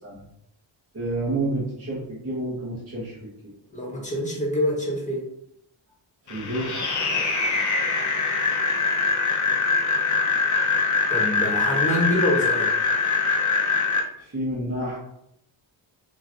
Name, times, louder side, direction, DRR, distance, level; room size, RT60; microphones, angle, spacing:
voice 1, 0.9-3.5 6.3-6.7 14.2-15.0, right 1 dB, 30° right, -9 dB, 1.4 m, -29 dB
voice 2, 3.7-5.2 11.1-12.7, left 1 dB, 15° left, -3 dB, 1.4 m, -25 dB
sound 1, 6.3-14.0, left 4 dB, 40° left, 0.8 m, -23 dB
5.5 x 2.9 x 2.6 m, 0.76 s
wide cardioid pair, 125°, 47 cm